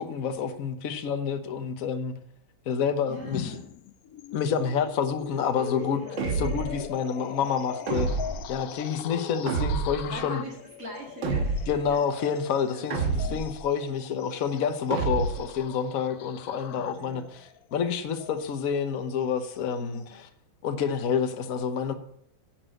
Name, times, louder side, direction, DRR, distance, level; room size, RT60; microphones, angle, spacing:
voice 1, 0.0-2.1 2.7-3.6 4.3-6.0 6.3-8.1 8.5-10.4 11.7-20.0 20.6-21.9, left 7 dB, 50° left, 1.3 m, -28 dB
voice 2, 3.0-3.7 5.6-6.5 7.4-7.7 10.1-12.0 12.3-12.9 13.2-13.4 16.7-17.4 19.8-20.3, right 1 dB, 40° right, 2.6 m, -44 dB
sound 1, 3.3-20.2, left 10 dB, 70° left, 0.9 m, -41 dB
sound 2, 6.2-6.8 7.9-8.5 9.5-10.1 11.2-11.9 12.9-13.6 14.9-15.5, right 4 dB, 70° right, 2.0 m, -28 dB
10.5 x 6.1 x 7.9 m
omnidirectional pair, 2.1 m